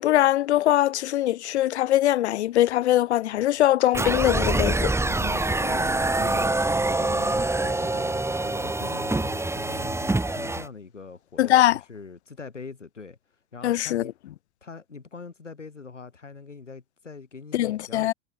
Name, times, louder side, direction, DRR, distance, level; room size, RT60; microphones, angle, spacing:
voice 1, 0.0-4.9 11.4-11.8 13.6-14.0 17.5-18.1, left 14 dB, 65° left, 2.6 m, -22 dB
sound 1, 3.9-10.7, right 2 dB, 5° right, 4.1 m, -25 dB
voice 2, 5.0-13.2 13.5-14.1 14.6-18.1, left 4 dB, 85° left, 7.4 m, -42 dB
figure-of-eight pair, 85°, 35 cm